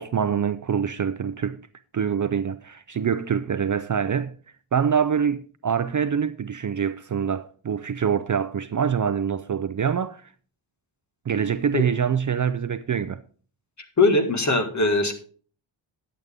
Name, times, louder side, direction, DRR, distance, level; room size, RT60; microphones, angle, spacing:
voice 1, 0.0-1.6 1.9-4.3 4.7-10.2 11.3-13.2, right 7 dB, 40° right, 0.5 m, -25 dB
voice 2, 14.0-15.1, left 2 dB, 35° left, 1.7 m, -20 dB
10.5 x 8.1 x 3.6 m
wide cardioid pair, 110°, 49 cm